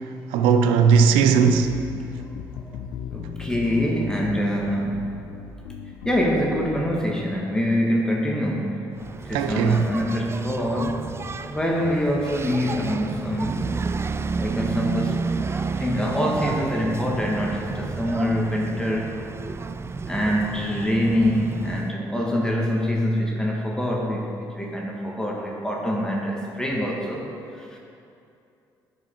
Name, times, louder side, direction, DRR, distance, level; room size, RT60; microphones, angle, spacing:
voice 1, 0.3-1.8 9.3-9.9, right 6 dB, 85° right, 0.6 m, -18 dB
sound 1, 1.2-7.2, left 7 dB, 80° left, 0.6 m, -37 dB
voice 2, 3.1-5.2 6.0-8.8 9.2-11.0 11.5-13.7 14.4-19.1 20.1-27.3 27.5-27.8, equal, 10° left, 1.6 m, -25 dB
Engine, 8.9-21.9, right 4 dB, 30° right, 0.4 m, -31 dB
11.5 x 5.4 x 4.4 m
supercardioid pair, 60°, 9 cm